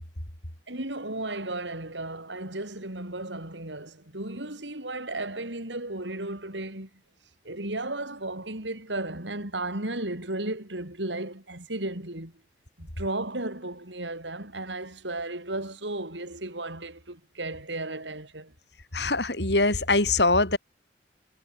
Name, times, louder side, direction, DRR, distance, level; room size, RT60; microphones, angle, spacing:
voice 1, 0.7-6.9 7.4-12.3 12.8-18.5, right 2 dB, 90° right, 6.3 m, -34 dB
voice 2, 18.9-20.6, left 2 dB, 75° left, 7.2 m, -23 dB
head